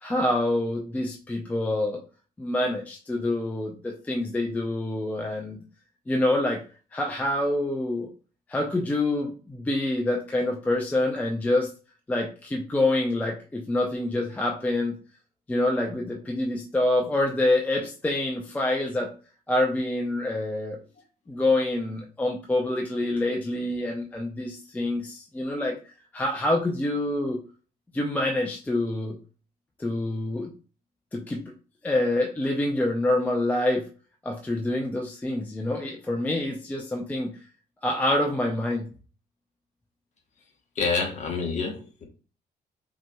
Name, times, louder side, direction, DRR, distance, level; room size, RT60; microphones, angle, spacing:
voice 1, 0.0-2.0 2.4-5.6 6.1-6.6 6.9-8.1 8.5-11.7 12.1-14.9 15.5-19.1 19.5-20.8 21.3-25.7 26.1-27.4 27.9-29.2 29.8-30.5 31.1-31.4 31.8-33.9 34.2-37.3 37.8-38.9, left 1 dB, 10° left, 1 dB, 0.5 m, -26 dB
voice 2, 40.8-42.0, left 4 dB, 45° left, 1 dB, 1.1 m, -27 dB
5.6 x 2.9 x 2.3 m, 0.37 s
cardioid pair, 145°, 17 cm